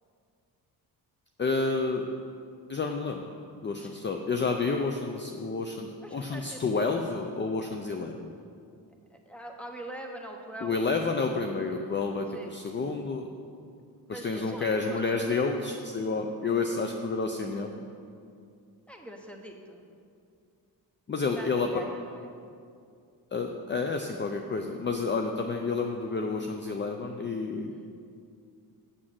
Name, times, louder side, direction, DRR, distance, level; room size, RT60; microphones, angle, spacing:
voice 1, 1.4-2.0 2.7-3.2 3.6-8.3 10.6-13.2 14.1-17.8 21.1-21.7 23.3-27.9, left 4 dB, 30° left, 4 dB, 0.5 m, -30 dB
voice 2, 6.0-7.1 9.1-11.2 12.3-12.6 14.1-15.4 18.9-19.9 21.2-22.3 27.7-27.9, right 1 dB, 5° left, 2 dB, 1.1 m, -44 dB
7.6 x 6.3 x 7.6 m, 2.4 s
cardioid pair, 105°, 39 cm